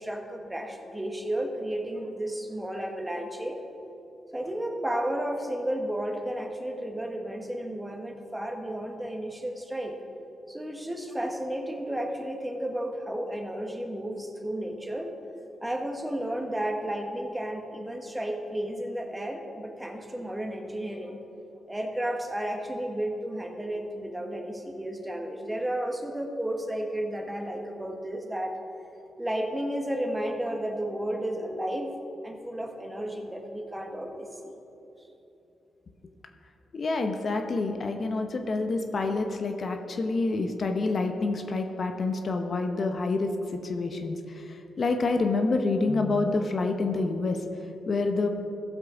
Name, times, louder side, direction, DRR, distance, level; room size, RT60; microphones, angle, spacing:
voice 1, 0.0-3.6 4.3-10.0 10.5-15.1 15.6-21.2 21.7-28.6 29.2-32.0 32.2-34.5, right 1 dB, 15° right, 3 dB, 1.4 m, -32 dB
voice 2, 36.7-47.4 47.9-48.3, left 3 dB, 55° left, 5 dB, 0.9 m, -27 dB
14.5 x 7.5 x 3.9 m, 2.9 s
supercardioid pair, 50°, 0 cm